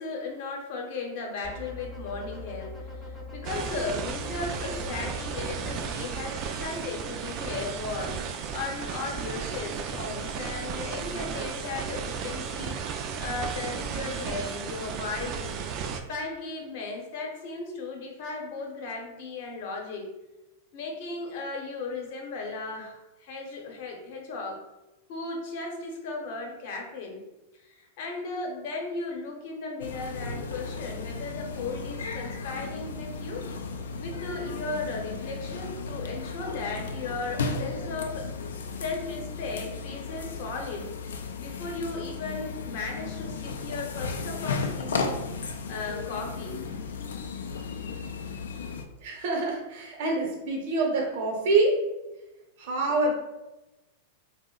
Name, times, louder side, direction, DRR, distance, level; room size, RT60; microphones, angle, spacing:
voice 1, 0.0-8.2 8.5-12.9 13.2-15.5 16.1-20.1 20.7-24.6 25.1-27.2 27.6-33.4 34.0-38.3 38.8-40.9 41.4-45.3 45.7-46.6, left 3 dB, 60° left, 1 dB, 0.8 m, -36 dB
sound 1, 1.4-5.8, left 2 dB, 10° left, 0.6 m, -41 dB
sound 2, 3.4-16.0, right 6 dB, 40° right, 0.3 m, -34 dB
sound 3, 29.8-48.8, left 4 dB, 85° left, 0.3 m, -35 dB
voice 2, 49.0-51.7 52.6-53.1, right 3 dB, 60° right, 0 dB, 0.7 m, -26 dB
2.7 x 2.0 x 3.7 m, 1.0 s
hypercardioid pair, 120°, 0 cm